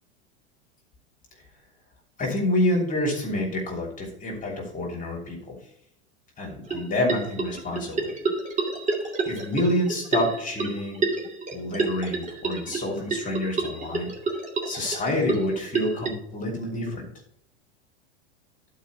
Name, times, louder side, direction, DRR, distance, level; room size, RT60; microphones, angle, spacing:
voice 1, 2.2-5.6 6.4-8.1 9.2-11.0 11.5-14.1 14.6-17.0, left 1 dB, 25° left, -1 dB, 2.9 m, -28 dB
sound 1, 6.7-16.1, right 4 dB, 20° right, 2.4 m, -29 dB
11.0 x 4.8 x 5.1 m, 0.69 s
hypercardioid pair, 100°, 33 cm